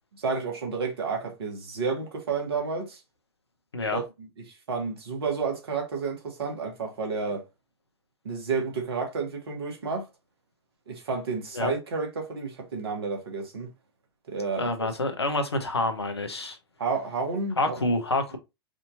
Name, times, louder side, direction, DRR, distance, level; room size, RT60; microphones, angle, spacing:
voice 1, 0.2-3.0 3.9-4.3 4.7-7.4 8.2-10.1 10.9-13.7 14.3-14.9 16.8-17.8, right 4 dB, 70° right, 1.7 m, -31 dB
voice 2, 14.6-16.6 17.6-18.4, left 2 dB, 85° left, 1.0 m, -27 dB
4.9 x 2.8 x 2.6 m
figure-of-eight pair, 95°, 13 cm